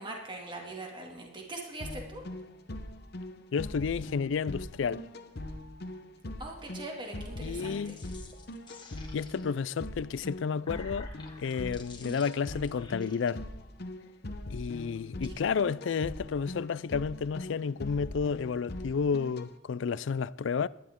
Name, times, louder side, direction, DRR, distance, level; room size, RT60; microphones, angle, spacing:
voice 1, 0.0-2.2 6.4-7.9 15.3-15.5, right 2 dB, 25° right, 2.3 m, -42 dB
sound 1, 1.8-19.5, left 1 dB, 55° left, 1.0 m, -41 dB
voice 2, 3.5-5.1 7.4-8.0 9.1-11.1 11.4-13.4 14.5-20.7, left 6 dB, 70° left, 0.4 m, -31 dB
sound 2, 7.5-9.6 10.3-13.3, left 4 dB, 25° left, 1.8 m, -52 dB
18.0 x 12.0 x 3.7 m
head